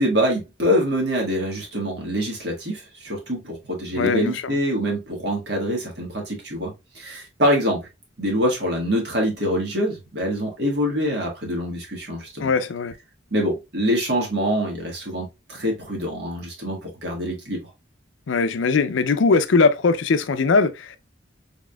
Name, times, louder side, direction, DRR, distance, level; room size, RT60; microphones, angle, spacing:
voice 1, 0.0-7.8 8.2-12.5 13.3-17.7, equal, 55° right, 1.6 m, -25 dB
voice 2, 4.0-4.5 12.4-12.9 18.3-21.0, left 4 dB, 70° left, 0.5 m, -20 dB
4.1 x 3.5 x 2.2 m
head